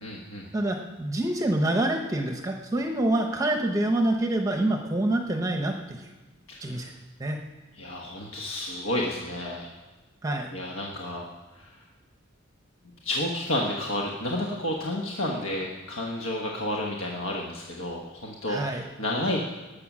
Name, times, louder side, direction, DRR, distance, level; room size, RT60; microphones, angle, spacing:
voice 1, 0.0-0.5 6.5-6.9 7.7-9.7 10.5-11.2 11.5-11.8 13.0-19.4, left 1 dB, 70° left, -1 dB, 1.2 m, -31 dB
voice 2, 0.5-6.1 6.6-6.9 7.2-7.4 10.2-10.5 18.5-18.9, right 1 dB, 15° right, 3 dB, 0.7 m, -26 dB
19.0 x 6.8 x 6.1 m, 1.2 s
head